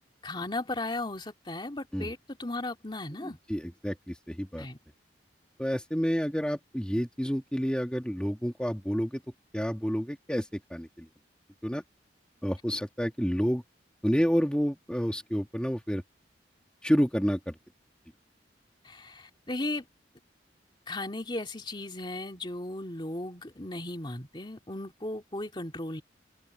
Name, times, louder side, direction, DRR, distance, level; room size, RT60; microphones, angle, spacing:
voice 1, 0.2-3.4 4.6-4.8 18.8-19.8 20.9-26.0, left 2 dB, 25° left, 2.7 m, -36 dB
voice 2, 3.2-4.7 5.6-9.2 9.5-11.1 11.6-11.8 12.4-13.6 14.0-16.0 16.8-17.5, equal, 5° left, 2.0 m, -29 dB
head